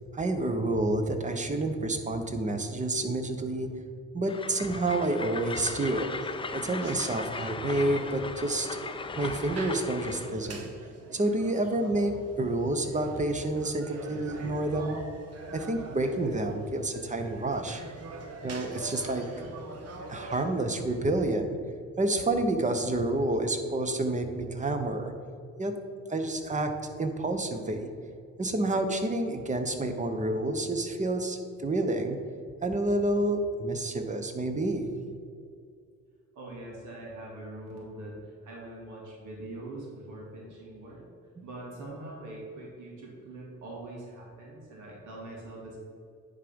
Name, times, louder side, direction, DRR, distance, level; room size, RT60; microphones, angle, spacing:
voice 1, 0.1-3.7 4.1-6.1 6.5-8.8 9.1-10.7 11.1-15.0 15.5-17.8 18.4-19.2 20.1-21.6 22.0-25.1 25.6-25.7 26.1-27.9 28.4-32.2 32.6-34.9, right 2 dB, 25° right, 7 dB, 0.9 m, -29 dB
Train, 4.3-10.3, left 4 dB, 20° left, 0.4 m, -38 dB
sound 1, 6.1-21.2, right 2 dB, 55° right, 1.1 m, -44 dB
voice 2, 36.3-41.1 41.4-45.8, right 1 dB, 85° right, -3 dB, 1.9 m, -43 dB
10.0 x 3.7 x 5.2 m, 2.3 s
cardioid pair, 90°, 30 cm